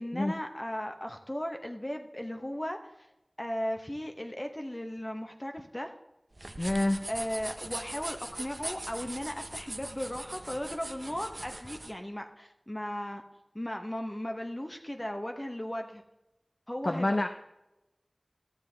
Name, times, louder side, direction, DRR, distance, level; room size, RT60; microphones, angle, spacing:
voice 1, 0.0-3.1 3.4-5.9 7.1-13.2 13.5-16.0 16.7-17.2, equal, 25° left, 4 dB, 0.8 m, -36 dB
sound 1, 6.3-11.9, right 1 dB, 55° right, 0.6 m, -41 dB
voice 2, 6.6-7.0 16.9-17.3, left 1 dB, 60° left, 6 dB, 0.5 m, -27 dB
13.0 x 7.4 x 3.2 m, 0.93 s
wide cardioid pair, 45°, 0 cm